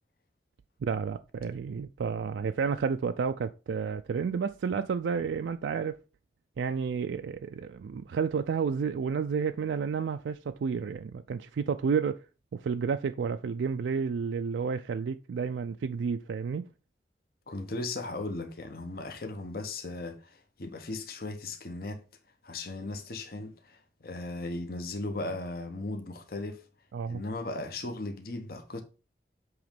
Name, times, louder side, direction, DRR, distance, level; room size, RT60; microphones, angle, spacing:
voice 1, 0.8-6.0 6.6-12.2 12.5-16.7 26.9-27.2, right 6 dB, 85° right, 0.3 m, -31 dB
voice 2, 17.5-22.0 22.4-26.6 27.1-28.8, left 2 dB, 55° left, 0.9 m, -37 dB
7.8 x 3.1 x 5.1 m
head